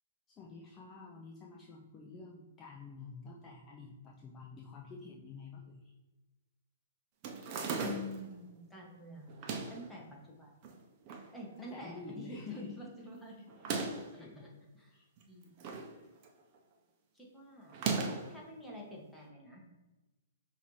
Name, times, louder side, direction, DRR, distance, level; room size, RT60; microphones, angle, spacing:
voice 1, 0.4-5.9 11.6-12.7 14.1-14.6 14.9-15.1, left 4 dB, 25° left, -2 dB, 0.6 m, -49 dB
sound 1, 7.2-8.3 9.3-9.9 10.6-11.3 11.7-11.8 11.9-12.0 13.5-14.1 15.2-15.9 16.2-16.6 17.7-18.4, right 4 dB, 40° right, 0.7 m, -37 dB
voice 2, 7.8-9.4 9.7-10.5 11.3-14.5 14.8-15.0 15.3-15.5 17.1-17.8 18.3-19.6, left 1 dB, 5° left, -4 dB, 1.3 m, -48 dB
5.5 x 2.8 x 3.1 m, 1.1 s
hypercardioid pair, 125°, 0 cm